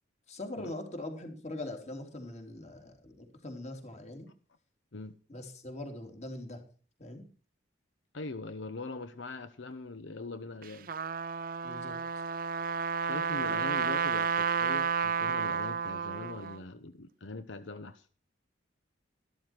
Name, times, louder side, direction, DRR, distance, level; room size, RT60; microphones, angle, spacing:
voice 1, 0.3-4.3 5.3-6.6 7.0-7.2 11.6-12.0 13.4-13.6, left 1 dB, 35° left, 4 dB, 3.3 m, -42 dB
voice 2, 8.1-10.9 13.0-18.1, left 3 dB, 70° left, 11 dB, 0.9 m, -42 dB
Trumpet, 10.6-16.6, right 6 dB, 45° right, 0.5 m, -31 dB
13.5 x 13.0 x 4.5 m, 0.39 s
head